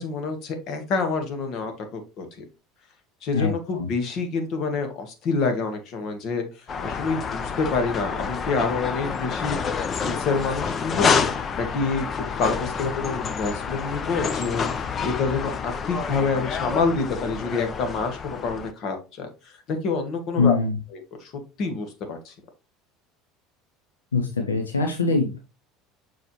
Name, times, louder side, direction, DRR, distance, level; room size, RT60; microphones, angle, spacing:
voice 1, 0.0-2.4 3.2-9.6 9.9-11.2 11.6-20.6 20.9-21.3 21.6-22.3, left 4 dB, 50° left, 6 dB, 1.7 m, -27 dB
voice 2, 3.3-3.9 20.4-20.8 24.1-25.4, left 4 dB, 85° left, 3 dB, 0.8 m, -23 dB
sound 1, 6.7-18.7, left 6 dB, 35° left, 0.7 m, -28 dB
6.7 x 4.7 x 3.1 m, 0.29 s
hypercardioid pair, 70°, 0 cm